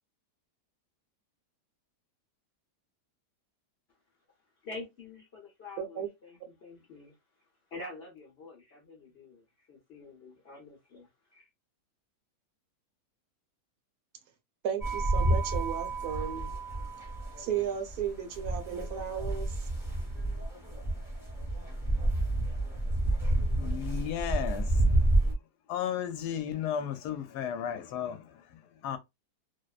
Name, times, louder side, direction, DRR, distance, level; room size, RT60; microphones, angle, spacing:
voice 1, 4.6-11.5, left 2 dB, 55° left, 0.7 m, -47 dB
voice 2, 5.8-6.1 14.6-16.5 17.4-19.5, right 8 dB, 75° right, 1.1 m, -34 dB
sound 1, 14.8-25.3, right 1 dB, ahead, 0.7 m, -29 dB
voice 3, 23.5-25.3 25.7-29.0, left 9 dB, 75° left, 1.1 m, -35 dB
2.8 x 2.0 x 2.3 m
omnidirectional pair, 1.8 m